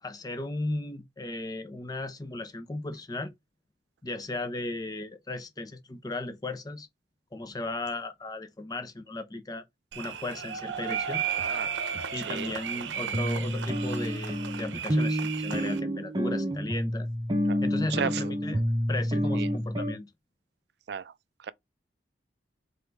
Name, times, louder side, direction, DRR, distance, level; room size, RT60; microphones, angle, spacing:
voice 1, 0.0-3.3 4.0-6.9 7.3-9.6 10.0-11.2 12.1-17.1 17.6-18.6 18.9-20.1, left 2 dB, 20° left, 0.6 m, -36 dB
sound 1, 9.9-15.8, right 7 dB, 80° right, 0.7 m, -34 dB
sound 2, 11.4-11.5 11.9-12.0 12.5-12.6 13.1-19.9, equal, 25° right, 0.7 m, -29 dB
voice 2, 11.4-11.7 12.3-12.5 17.5-17.6 17.9-18.3 19.3-19.5 20.9-21.1, right 7 dB, 60° right, 0.3 m, -33 dB
4.0 x 3.6 x 3.4 m
head